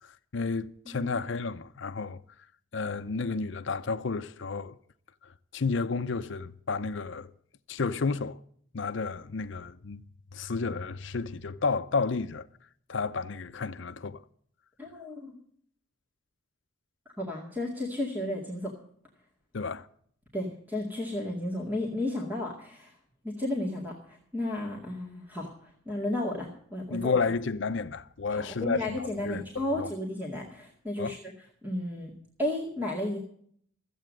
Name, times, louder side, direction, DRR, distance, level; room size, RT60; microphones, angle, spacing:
voice 1, 0.3-2.2 2.7-4.8 5.5-7.3 7.7-8.4 8.7-10.0 10.3-12.5 12.9-14.2 19.5-19.9 26.9-29.9 31.0-31.2, left 4 dB, 60° left, 0.6 m, -31 dB
voice 2, 14.8-15.4 17.2-18.7 20.3-22.9 23.2-25.5 25.9-27.2 28.3-31.3 31.6-32.1 32.4-33.2, left 1 dB, 10° right, 2.1 m, -33 dB
14.5 x 8.3 x 7.6 m
head